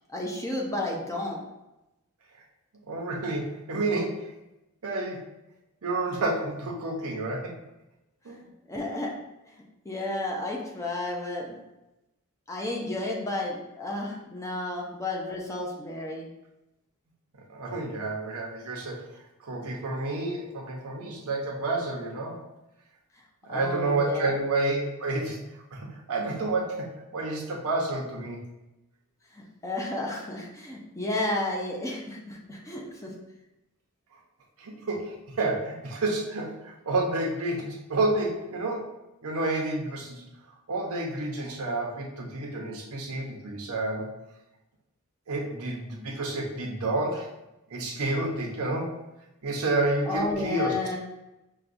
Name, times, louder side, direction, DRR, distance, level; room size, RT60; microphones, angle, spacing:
voice 1, 0.1-1.4 8.7-9.1 9.9-11.6 12.5-16.3 23.5-24.4 29.3-33.1 50.1-51.0, left 2 dB, 15° left, -1 dB, 0.5 m, -32 dB
voice 2, 2.9-4.3 4.8-5.2 5.8-7.6 8.2-8.4 17.5-19.0 19.4-22.4 23.4-25.4 25.7-28.4 34.6-38.9 39.2-40.2 40.7-44.1 45.3-47.3 47.7-48.9 49.4-50.7, right 2 dB, 70° right, -1 dB, 0.7 m, -29 dB
5.7 x 2.2 x 2.5 m, 0.94 s
head